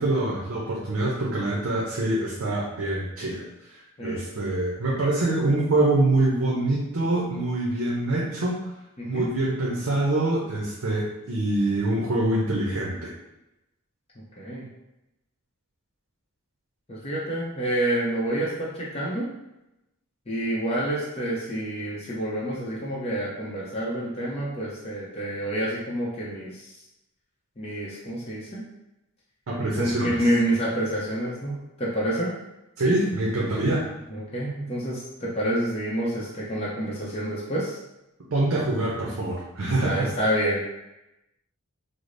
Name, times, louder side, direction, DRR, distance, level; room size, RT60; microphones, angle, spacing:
voice 1, 0.0-3.4 4.0-8.7 9.1-13.1 29.5-30.2 32.8-33.8 38.3-40.1, right 2 dB, 70° right, -4 dB, 0.6 m, -25 dB
voice 2, 9.0-9.3 14.4-14.7 16.9-19.3 20.3-26.7 27.6-28.6 29.6-32.3 34.1-37.8 39.8-40.6, right 1 dB, 30° left, -6 dB, 0.6 m, -28 dB
4.8 x 2.0 x 2.5 m, 0.92 s
head